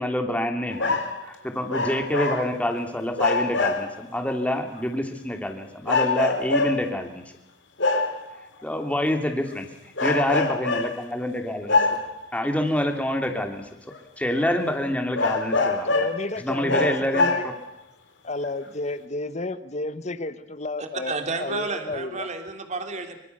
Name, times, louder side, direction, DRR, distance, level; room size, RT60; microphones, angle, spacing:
voice 1, 0.0-7.2 8.6-9.6 10.0-11.8 12.3-13.7 14.2-16.1 16.4-17.5, left 1 dB, 10° left, 4 dB, 2.8 m, -27 dB
sound 1, 0.7-1.2 1.7-2.8 3.2-4.0 4.8-4.9 5.9-7.0 7.8-8.3 9.3-9.5 10.0-11.0 11.7-12.3 13.2-13.3 13.9-14.0 14.4-14.5 15.1-16.2 16.7-17.7 18.4-18.5, left 3 dB, 90° left, 3.4 m, -24 dB
voice 2, 15.5-17.5 18.2-22.3, left 2 dB, 40° left, 12 dB, 1.4 m, -32 dB
voice 3, 20.8-23.2, right 3 dB, 40° right, 6 dB, 2.9 m, -31 dB
25.5 x 24.5 x 6.9 m, 0.80 s
head